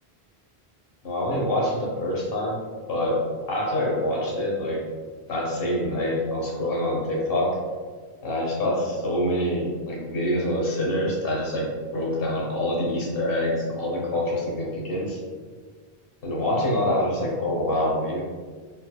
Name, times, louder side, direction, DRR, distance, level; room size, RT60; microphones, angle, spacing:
voice 1, 1.0-2.6 2.9-3.2 3.5-4.8 5.3-7.6 8.2-15.2 16.2-18.2, left 1 dB, 60° left, -2 dB, 1.2 m, -26 dB
4.1 x 4.1 x 2.3 m, 1.5 s
omnidirectional pair, 1.1 m